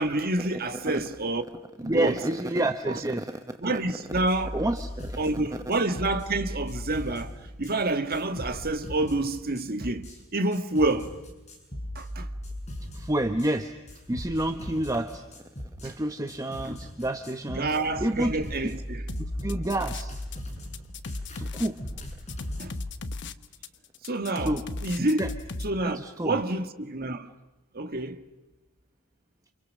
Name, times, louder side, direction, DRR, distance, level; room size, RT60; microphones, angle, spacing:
voice 1, 0.0-1.4 1.8-2.2 2.9-3.0 3.6-4.6 5.2-7.3 7.6-11.1 11.9-12.3 15.8-15.9 17.6-19.0 22.6-22.7 24.0-24.5 24.8-25.2 25.6-27.3 27.7-28.2, right 2 dB, 45° right, 1.7 m, -28 dB
voice 2, 1.8-3.3 4.5-5.2 5.5-5.6 12.9-13.7 14.1-15.2 15.8-18.4 18.6-18.7 19.2-20.2 21.4-21.8 24.4-24.6 25.0-25.3 25.8-26.4, right 1 dB, 15° right, 1.0 m, -29 dB
sound 1, 4.1-7.8 8.1-10.2 10.5-13.5 13.9-16.0 16.3-22.8, equal, 30° left, 7.0 m, -39 dB
sound 2, 19.1-20.4 20.6-25.7, left 2 dB, 55° left, 1.1 m, -36 dB
29.0 x 28.5 x 6.5 m
head